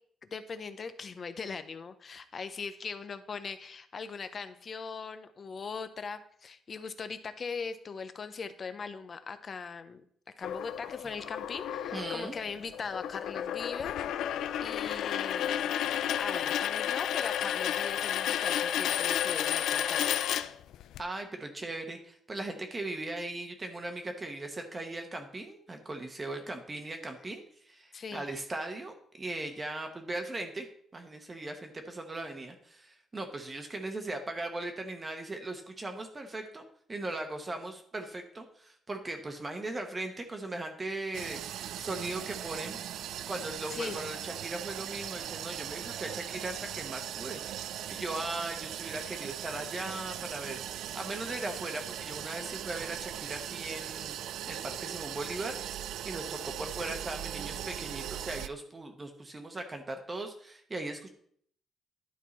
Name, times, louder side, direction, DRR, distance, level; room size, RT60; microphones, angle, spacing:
voice 1, 0.3-10.0 10.4-14.0 14.6-15.6 16.2-20.2 27.9-28.4 43.7-44.0, left 5 dB, 35° left, 11 dB, 0.6 m, -40 dB
sound 1, 10.4-21.0, left 10 dB, 80° left, 0.4 m, -32 dB
voice 2, 11.9-12.4 21.0-30.7 30.9-42.8 43.3-54.1 54.5-61.1, right 2 dB, 20° right, 5 dB, 0.9 m, -39 dB
sound 2, 41.1-58.5, right 11 dB, 80° right, 0.3 m, -39 dB
11.0 x 4.6 x 4.1 m, 0.63 s
cardioid pair, 135°, 0 cm